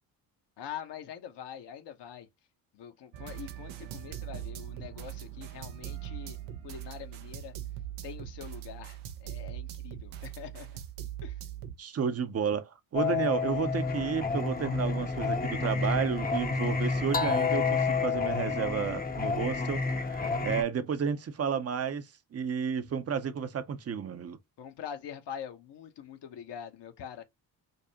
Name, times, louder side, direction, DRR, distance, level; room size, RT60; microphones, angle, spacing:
voice 1, 0.6-2.3 2.7-6.4 6.6-7.5 8.0-10.7 11.2-11.4 24.6-27.2, left 9 dB, 60° left, 1.0 m, -44 dB
sound 1, 3.1-11.8, right 11 dB, 85° right, 0.7 m, -41 dB
voice 2, 11.8-24.4, right 7 dB, 30° right, 0.6 m, -32 dB
Singing, 12.9-20.6, left 4 dB, 20° left, 0.7 m, -29 dB
5.1 x 2.0 x 2.8 m
hypercardioid pair, 50°, 47 cm